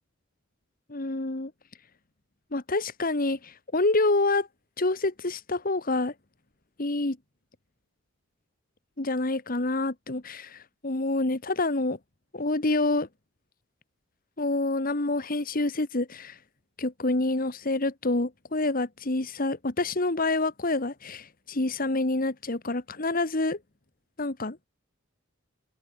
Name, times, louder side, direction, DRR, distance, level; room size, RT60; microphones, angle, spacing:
voice 1, 0.9-1.5 2.5-4.5 4.8-6.1 6.8-7.2 9.0-12.0 12.3-13.1 14.4-16.4 16.8-23.6 24.2-24.6, left 2 dB, 45° left, 1.5 m, -27 dB
head